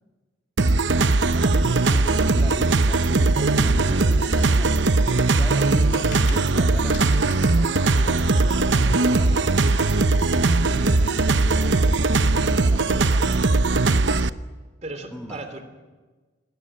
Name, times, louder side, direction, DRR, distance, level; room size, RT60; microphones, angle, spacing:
sound 1, 0.6-14.3, right 3 dB, 75° right, 0.8 m, -19 dB
voice 1, 1.3-9.9 10.5-12.0 12.6-13.6 15.1-15.5, equal, 5° left, 2 dB, 1.9 m, -39 dB
sound 2, 1.5-4.5 5.7-6.4 6.7-7.6 8.0-13.5, equal, 85° left, 4.8 m, -35 dB
sound 3, 3.6-10.6, left 1 dB, 45° left, 4.3 m, -47 dB
voice 2, 14.8-15.6, right 2 dB, 40° right, 8 dB, 3.4 m, -38 dB
26.5 x 21.0 x 8.8 m, 1.3 s
head